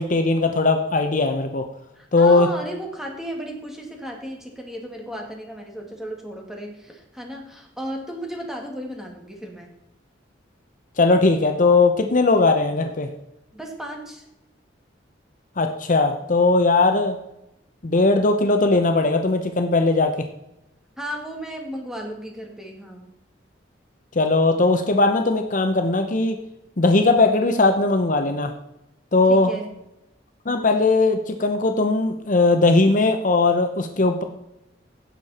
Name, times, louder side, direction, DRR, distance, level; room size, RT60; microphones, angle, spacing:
voice 1, 0.0-1.7 2.1-2.5 11.0-13.1 15.6-17.2 17.8-20.3 24.1-26.4 26.8-28.5 29.1-29.5 30.5-34.2, left 3 dB, 45° left, 6 dB, 0.8 m, -19 dB
voice 2, 2.0-9.8 13.5-14.2 21.0-23.1 29.3-29.7, equal, 5° right, 1 dB, 2.2 m, -34 dB
16.5 x 6.7 x 4.3 m, 0.88 s
head